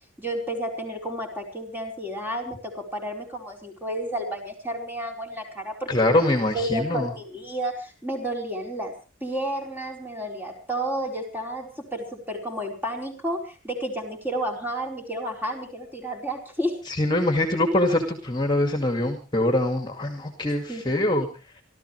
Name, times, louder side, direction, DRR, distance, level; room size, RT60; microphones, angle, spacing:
voice 1, 0.2-6.0 6.5-8.9 9.2-16.8 20.7-21.1, right 1 dB, 10° right, 1 dB, 4.5 m, -31 dB
voice 2, 5.9-7.1 16.9-21.3, left 1 dB, 20° left, 5 dB, 2.2 m, -23 dB
27.5 x 13.5 x 3.3 m, 0.34 s
head